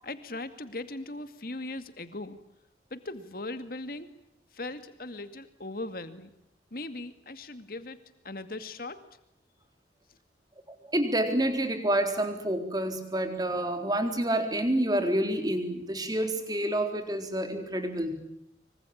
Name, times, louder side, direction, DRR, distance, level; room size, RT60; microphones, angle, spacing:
voice 1, 0.0-2.4 2.9-4.2 4.5-6.3 6.7-8.0 8.2-9.1, left 2 dB, 55° left, 10 dB, 2.3 m, -39 dB
voice 2, 10.9-18.2, right 1 dB, 20° right, 6 dB, 4.0 m, -28 dB
26.0 x 24.5 x 8.8 m, 0.74 s
head